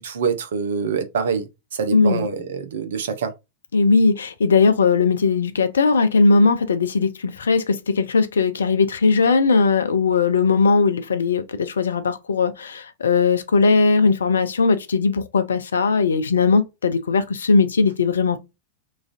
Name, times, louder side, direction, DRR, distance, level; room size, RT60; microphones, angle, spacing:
voice 1, 0.0-3.3, right 6 dB, 60° right, 0.6 m, -25 dB
voice 2, 1.9-2.3 3.7-18.4, left 4 dB, 70° left, 0.4 m, -19 dB
3.1 x 2.4 x 2.4 m
figure-of-eight pair, 90°, 0 cm